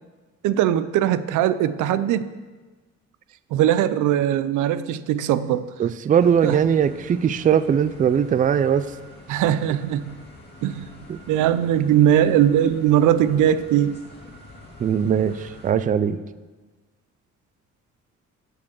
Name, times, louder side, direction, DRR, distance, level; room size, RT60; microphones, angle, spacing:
voice 1, 0.4-2.3 3.5-5.6 6.4-6.6 9.3-10.1 10.6-10.9 11.3-14.0, right 11 dB, 85° right, 14 dB, 0.5 m, -20 dB
voice 2, 5.8-8.9 11.1-11.2 14.8-16.2, right 8 dB, 30° right, 15 dB, 0.3 m, -20 dB
sound 1, 6.2-15.7, left 1 dB, 35° left, 1.9 m, -46 dB
7.2 x 7.0 x 6.2 m, 1.3 s
cardioid pair, 90°, 30 cm